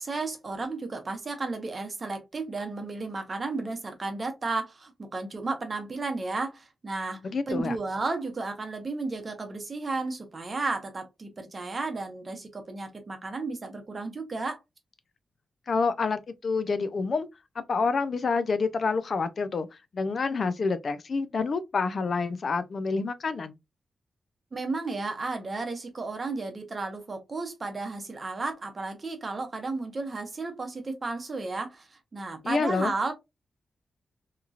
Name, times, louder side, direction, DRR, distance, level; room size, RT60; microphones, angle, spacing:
voice 1, 0.0-7.2 7.5-14.6 24.5-31.9 32.1-33.1, right 3 dB, 30° right, 0.7 m, -33 dB
voice 2, 7.2-7.8 15.7-17.3 17.6-19.7 19.9-23.6 32.4-32.9, left 4 dB, 45° left, 0.3 m, -28 dB
2.9 x 2.7 x 2.3 m
wide cardioid pair, 165°, 0 cm